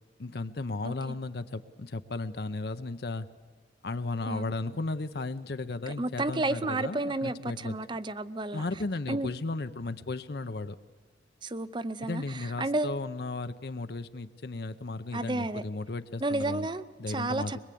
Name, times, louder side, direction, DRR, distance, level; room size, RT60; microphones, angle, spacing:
voice 1, 0.2-3.3 3.8-7.8 8.5-10.8 12.0-16.7 17.0-17.6, left 3 dB, 60° left, 10 dB, 0.7 m, -35 dB
voice 2, 6.0-8.6 9.1-9.3 11.4-12.9 15.1-15.6 16.2-17.6, right 2 dB, 25° right, 15 dB, 0.6 m, -31 dB
23.5 x 21.0 x 8.5 m, 1.5 s
head